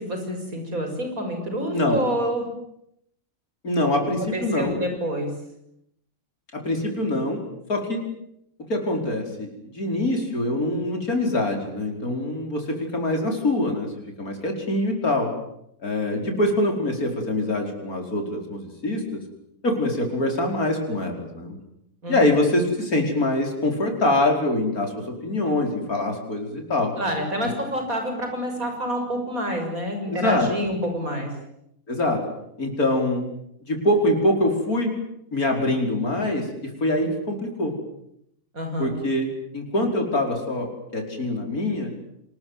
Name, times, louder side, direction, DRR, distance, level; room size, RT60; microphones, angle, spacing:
voice 1, 0.0-2.5 4.3-5.3 22.0-22.3 27.0-31.3 38.5-39.0, equal, 70° right, 4 dB, 7.1 m, -27 dB
voice 2, 1.7-2.0 3.6-4.8 6.5-7.4 7.7-8.1 8.7-13.9 14.2-15.3 15.8-19.2 19.6-21.6 22.1-26.9 30.1-30.5 31.9-32.2 32.6-33.2 33.6-35.0 35.3-37.7 38.8-39.3 39.5-41.9, left 1 dB, 85° left, 3 dB, 5.6 m, -24 dB
27.0 x 21.0 x 9.5 m, 0.76 s
omnidirectional pair, 1.5 m